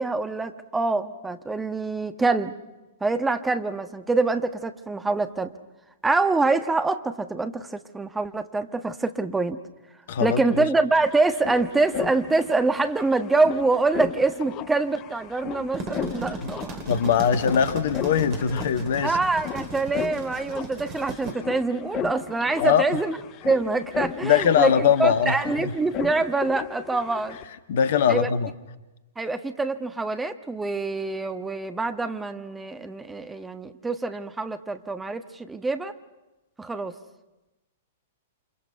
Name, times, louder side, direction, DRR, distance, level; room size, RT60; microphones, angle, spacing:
voice 1, 0.0-2.5 3.0-5.5 6.0-9.6 10.2-16.8 19.0-23.2 23.4-27.4 28.1-28.3 29.2-35.9 36.6-37.0, right 3 dB, 10° right, 9 dB, 1.3 m, -25 dB
voice 2, 10.1-10.7 16.4-16.5 16.9-19.1 22.6-22.8 24.2-25.7 27.7-28.5, left 8 dB, 55° left, 12 dB, 1.4 m, -21 dB
sound 1, 10.4-10.5 10.7-27.4, left 12 dB, 30° left, 1.1 m, -37 dB
sound 2, 15.5-21.3, right 3 dB, 35° right, 4.6 m, -37 dB
28.5 x 27.5 x 5.8 m, 1.0 s
figure-of-eight pair, 105°, 0 cm